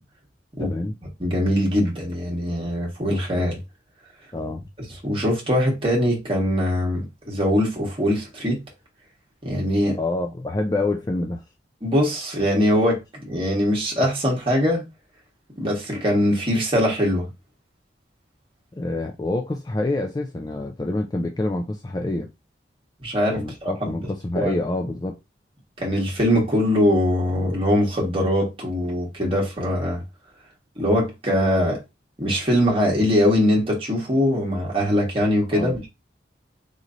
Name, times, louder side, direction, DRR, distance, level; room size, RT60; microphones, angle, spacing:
voice 1, 0.6-0.9 4.3-4.7 10.0-11.4 18.8-22.3 23.3-25.2 35.5-35.9, left 2 dB, 20° left, 0.3 m, -27 dB
voice 2, 1.2-3.6 5.0-8.6 9.4-10.0 11.8-13.0 13.2-14.8 15.6-17.3 23.0-23.7 24.3-24.5 25.8-30.0 30.8-31.8 32.2-35.8, equal, 30° right, 1.3 m, -22 dB
3.9 x 3.1 x 2.5 m
head